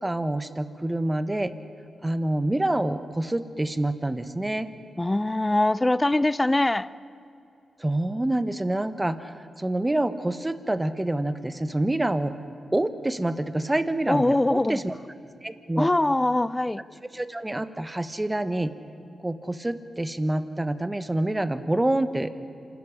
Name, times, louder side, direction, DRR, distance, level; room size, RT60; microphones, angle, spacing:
voice 1, 0.0-1.5 2.0-4.7 7.8-12.4 12.7-15.0 15.4-15.9 17.1-18.7 19.2-22.3, right 1 dB, 15° right, 1.3 m, -27 dB
voice 2, 5.0-6.9 14.1-14.8 15.8-16.8, left 2 dB, 20° left, 0.6 m, -22 dB
27.0 x 13.5 x 9.8 m
cardioid pair, 55°, 0 cm